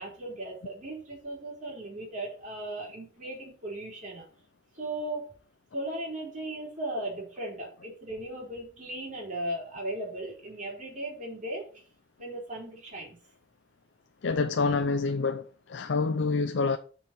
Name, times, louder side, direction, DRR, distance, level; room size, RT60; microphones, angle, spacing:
voice 1, 0.0-4.2 4.7-5.3 5.7-11.7 12.2-13.2, right 1 dB, 45° right, 4.0 m, -37 dB
voice 2, 14.2-16.8, left 4 dB, 80° left, 0.5 m, -27 dB
6.7 x 5.6 x 6.0 m
head